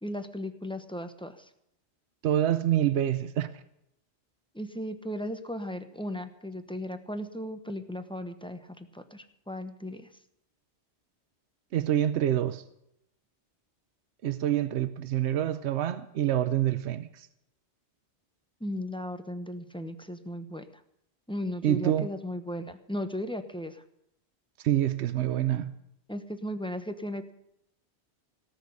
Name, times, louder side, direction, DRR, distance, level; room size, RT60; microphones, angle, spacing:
voice 1, 0.0-1.5 4.5-10.1 18.6-20.6 21.3-23.8 26.1-27.3, equal, 5° left, 0.9 m, -36 dB
voice 2, 2.2-3.5 11.7-12.6 14.2-17.3 21.6-22.1 24.6-25.7, right 11 dB, 80° right, 1.0 m, -26 dB
18.5 x 6.5 x 9.5 m
omnidirectional pair, 1.1 m